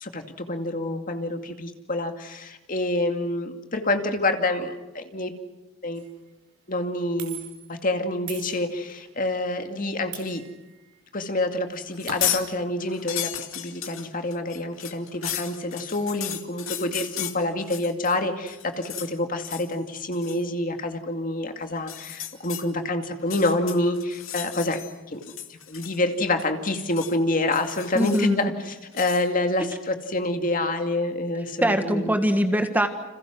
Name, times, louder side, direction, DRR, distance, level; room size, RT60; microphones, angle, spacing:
voice 1, 0.0-5.3 5.8-6.0 6.7-7.4 7.7-10.4 11.1-24.8 25.1-25.2 25.5-32.2, left 2 dB, 40° left, 6 dB, 2.4 m, -27 dB
sound 1, 6.0-6.2 7.2-7.7 8.3-9.1 10.1-11.0 11.3-11.4 11.7-12.5, right 10 dB, 55° right, 4.9 m, -42 dB
sound 2, 11.9-12.5 12.8-18.2 18.5-19.1 19.4-19.7 20.1-20.4 21.8-22.6 23.2-24.9 25.2-26.1 26.4-27.2 27.5-28.4 28.9-29.2, left 11 dB, 90° left, 2.3 m, -34 dB
voice 2, 28.0-28.5 29.6-29.7 31.6-32.9, equal, 10° right, 6 dB, 1.6 m, -22 dB
30.0 x 27.5 x 6.2 m, 1.1 s
head